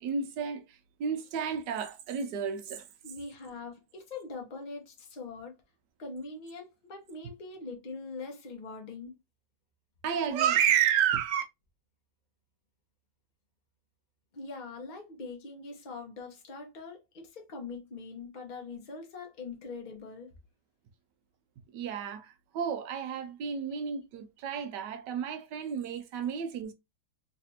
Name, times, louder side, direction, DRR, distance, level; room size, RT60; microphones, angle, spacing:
voice 1, 0.0-2.8 10.0-11.4 21.7-26.7, right 8 dB, 70° right, 1.2 m, -31 dB
voice 2, 3.0-5.6 6.0-9.1 14.3-20.3, left 3 dB, 35° left, 0.8 m, -42 dB
3.3 x 3.3 x 2.8 m
omnidirectional pair, 2.1 m